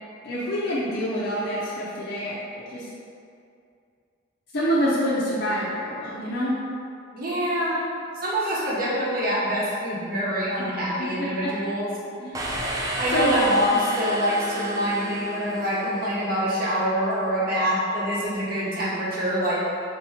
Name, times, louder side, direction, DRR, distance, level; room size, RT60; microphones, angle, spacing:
voice 1, 0.2-2.9 4.5-6.6 8.4-8.5 11.0-11.7 12.2-12.4 13.1-13.4, equal, 55° left, -8 dB, 0.6 m, -27 dB
voice 2, 7.1-7.8 8.2-11.9 13.0-19.5, equal, 50° right, -7 dB, 1.0 m, -25 dB
sound 1, 12.3-16.1, right 1 dB, 20° right, 0.3 m, -31 dB
3.6 x 2.8 x 4.2 m, 2.4 s
head